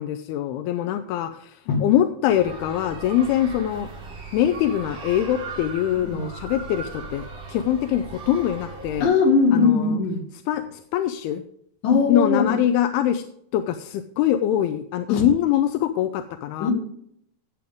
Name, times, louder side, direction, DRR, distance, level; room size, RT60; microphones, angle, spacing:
voice 1, 0.0-3.9 4.3-9.1 9.5-10.0 10.5-11.4 12.1-13.2 13.5-16.7, left 11 dB, 85° left, 8 dB, 2.6 m, -23 dB
sound 1, 2.3-9.0, right 4 dB, 45° right, 4.0 m, -38 dB
voice 2, 9.0-10.2 11.8-12.6 15.1-15.3 16.6-16.7, left 4 dB, 65° left, 2 dB, 3.6 m, -20 dB
16.5 x 7.7 x 3.5 m, 0.69 s
omnidirectional pair, 4.5 m